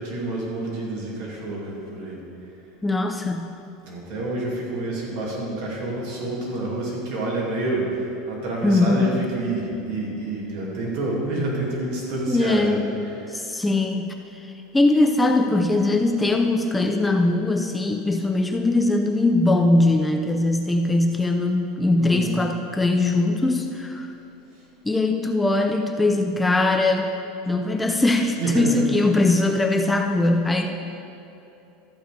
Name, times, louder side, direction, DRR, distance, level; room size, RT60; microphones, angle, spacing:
voice 1, 0.0-2.2 3.8-7.9 8.3-13.2 22.0-22.4 28.4-28.9 29.4-29.5, right 2 dB, 60° right, -4 dB, 2.6 m, -28 dB
voice 2, 2.8-3.5 8.6-9.2 12.3-12.9 13.3-14.5 14.7-24.1 24.8-27.1 27.5-30.7, left 2 dB, 5° left, 4 dB, 0.4 m, -21 dB
13.5 x 7.0 x 5.1 m, 2.8 s
supercardioid pair, 160°, 0 cm